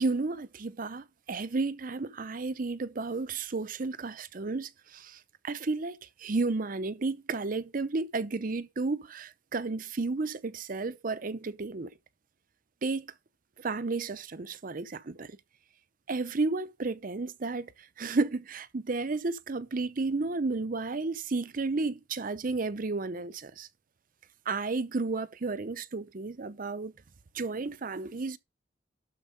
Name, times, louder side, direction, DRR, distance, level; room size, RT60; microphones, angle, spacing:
voice 1, 0.0-5.2 5.4-11.9 12.8-13.1 13.6-15.3 16.1-17.7 18.0-23.7 24.5-26.9 27.3-28.4, right 3 dB, 45° right, 0.7 m, -32 dB
12.0 x 4.6 x 5.3 m
head